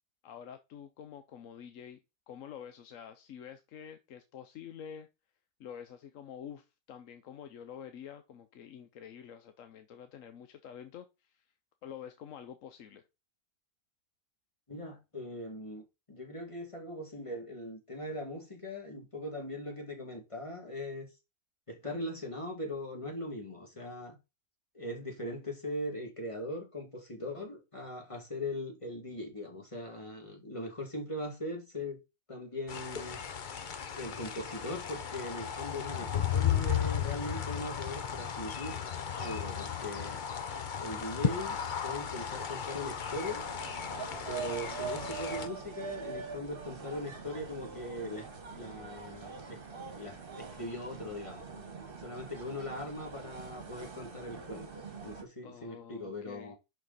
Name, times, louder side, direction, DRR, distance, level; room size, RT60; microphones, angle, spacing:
voice 1, 0.2-2.0 2.3-5.1 5.6-11.4 11.8-13.0 55.4-56.5, left 8 dB, 65° left, 1.0 m, -48 dB
voice 2, 14.7-21.1 21.7-24.2 24.7-32.0 32.3-33.2 34.0-38.8 39.2-40.2 40.8-43.4 44.3-49.6 49.9-51.4 52.0-56.6, left 1 dB, 20° left, 2.3 m, -40 dB
sound 1, 32.7-45.5, left 8 dB, 45° left, 0.7 m, -35 dB
sound 2, 43.1-55.2, right 5 dB, 40° right, 1.5 m, -43 dB
11.0 x 4.6 x 4.1 m
omnidirectional pair, 1.6 m